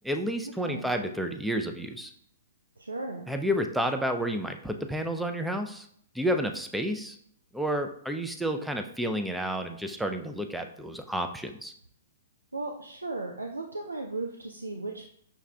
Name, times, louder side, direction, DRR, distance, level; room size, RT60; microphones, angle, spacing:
voice 1, 0.0-2.1 3.3-5.9 6.1-7.2 7.5-11.7, equal, 5° right, 5 dB, 0.3 m, -30 dB
voice 2, 2.8-3.3 12.5-15.0, right 3 dB, 85° right, 2 dB, 0.3 m, -36 dB
5.8 x 2.3 x 2.2 m, 0.67 s
figure-of-eight pair, 115°, 0 cm